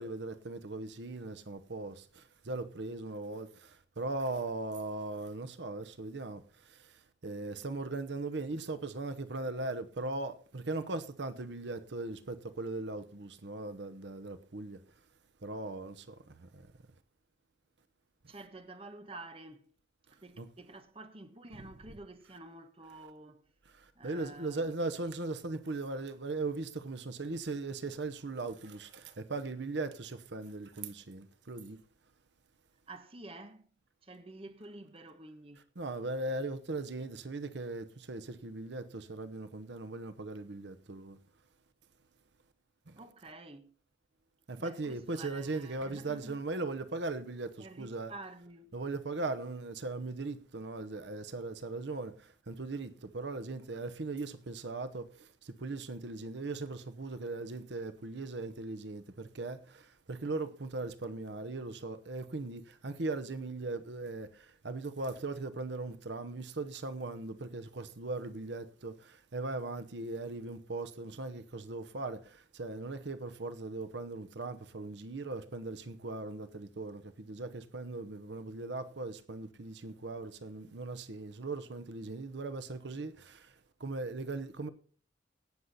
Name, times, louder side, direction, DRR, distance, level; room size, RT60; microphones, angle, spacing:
voice 1, 0.0-3.7 4.0-6.4 7.2-14.8 15.4-16.2 16.5-16.6 20.4-20.5 24.0-31.8 35.8-41.2 44.5-48.1 48.7-52.1 52.5-55.1 55.4-59.8 60.1-64.3 64.6-83.5 83.8-84.7, right 2 dB, 75° right, 0.9 m, -39 dB
voice 2, 18.3-19.7 20.1-23.4 23.9-24.8 32.9-33.7 34.0-35.7 42.9-43.7 44.6-46.4 47.6-48.7, right 2 dB, 30° right, 1.1 m, -49 dB
17.5 x 6.7 x 4.1 m
head